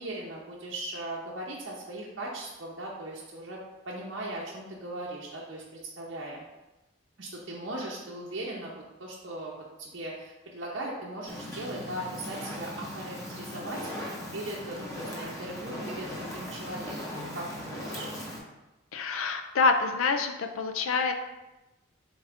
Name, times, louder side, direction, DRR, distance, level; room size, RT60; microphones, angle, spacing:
voice 1, 0.0-6.4 7.2-9.5 9.8-18.1, right 1 dB, 60° right, -4 dB, 0.7 m, -39 dB
Fire, 11.3-18.4, left 1 dB, 15° left, 0.7 m, -39 dB
voice 2, 18.9-21.1, left 4 dB, 80° left, 6 dB, 0.4 m, -26 dB
3.9 x 3.7 x 3.5 m, 1.0 s
head